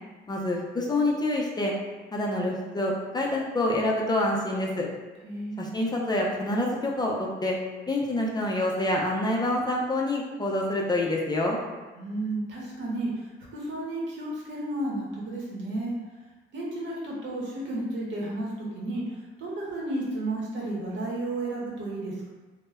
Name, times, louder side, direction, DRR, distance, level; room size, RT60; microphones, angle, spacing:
voice 1, 0.3-1.7 2.1-4.9 5.6-7.6 7.9-11.6, left 1 dB, 20° left, -2 dB, 0.4 m, -27 dB
voice 2, 5.2-5.7 12.0-13.1 13.5-15.9 16.5-19.0 19.4-22.3, right 2 dB, 70° right, -4 dB, 0.8 m, -32 dB
2.1 x 2.0 x 3.4 m, 1.2 s
cardioid pair, 90°, 20 cm